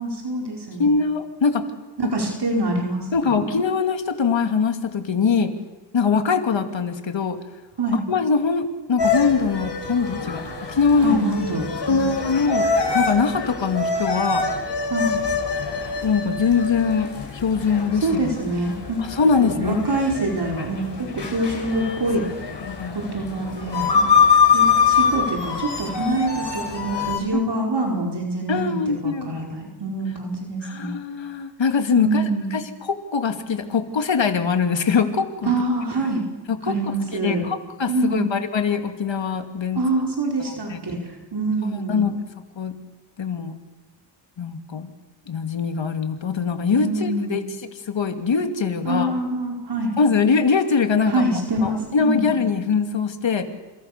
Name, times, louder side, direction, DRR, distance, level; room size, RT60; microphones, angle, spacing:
voice 1, 0.0-1.0 2.0-3.5 7.8-8.0 11.0-12.0 14.9-15.2 18.0-19.0 19.4-22.2 22.9-24.1 24.5-28.8 29.0-30.9 32.0-32.6 35.4-36.2 36.7-37.4 37.9-38.3 39.7-41.0 41.3-42.1 46.7-47.5 48.8-49.9 51.1-52.4, right 2 dB, 65° right, 0 dB, 4.8 m, -25 dB
voice 2, 0.8-1.7 2.0-2.1 3.1-5.5 5.9-7.4 8.1-10.4 10.7-11.2 11.9-14.5 16.0-18.3 19.1-19.8 22.6-23.1 27.3-27.4 28.5-29.5 30.6-35.5 36.6-36.8 37.1-39.8 40.5-40.8 41.9-42.1 42.6-42.7 43.2-43.6 44.4-44.9 45.3-47.4 47.9-49.1 50.0-51.2 51.6-53.4, left 5 dB, 85° left, 6 dB, 2.5 m, -22 dB
sound 1, 9.0-27.2, left 5 dB, 65° left, 5.0 m, -24 dB
29.0 x 28.0 x 6.7 m, 1.2 s
wide cardioid pair, 75°, 44 cm